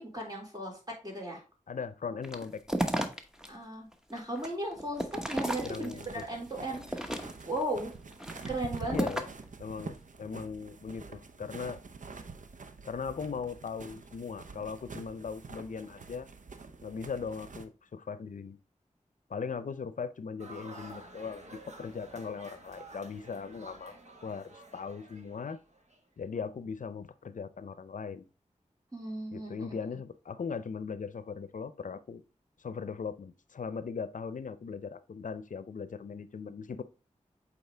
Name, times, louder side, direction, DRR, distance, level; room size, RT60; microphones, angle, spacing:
voice 1, 0.0-1.4 3.5-5.9 6.3-7.9 8.5-9.1 28.9-29.6, right 1 dB, 30° right, -2 dB, 3.9 m, -36 dB
voice 2, 1.7-2.8 5.6-6.2 8.9-9.3 9.6-11.8 12.8-16.3 16.8-18.6 19.3-25.6 26.2-28.2 29.3-32.2 32.6-36.8, left 5 dB, 75° left, 14 dB, 0.6 m, -39 dB
sound 1, 2.2-3.5 3.9-6.2 6.7-7.6 8.1-9.5, right 1 dB, 5° right, 1.1 m, -34 dB
sound 2, 5.2-17.7, right 4 dB, 75° right, 0.7 m, -47 dB
sound 3, 20.4-26.0, right 2 dB, 60° right, 1.4 m, -51 dB
8.1 x 4.1 x 3.3 m, 0.33 s
cardioid pair, 45°, 13 cm